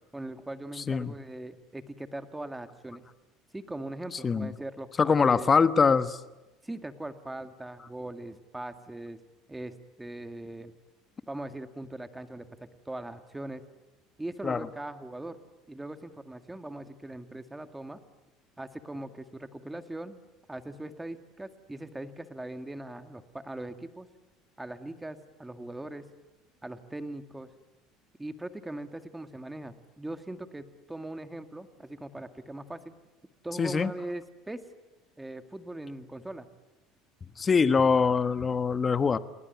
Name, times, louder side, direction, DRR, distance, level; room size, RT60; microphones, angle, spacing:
voice 1, 0.1-3.0 3.5-5.5 6.6-9.2 9.5-10.7 11.3-13.6 14.2-15.4 15.7-18.0 18.6-20.2 20.5-24.1 24.6-26.1 26.6-27.5 28.2-32.9 33.4-34.6 35.2-36.5, right 1 dB, 10° right, 9 dB, 2.0 m, -40 dB
voice 2, 5.0-6.2 14.4-14.7 33.6-33.9 37.4-39.2, left 5 dB, 25° left, 12 dB, 1.3 m, -23 dB
29.5 x 21.0 x 9.4 m, 1.1 s
supercardioid pair, 120°, 0 cm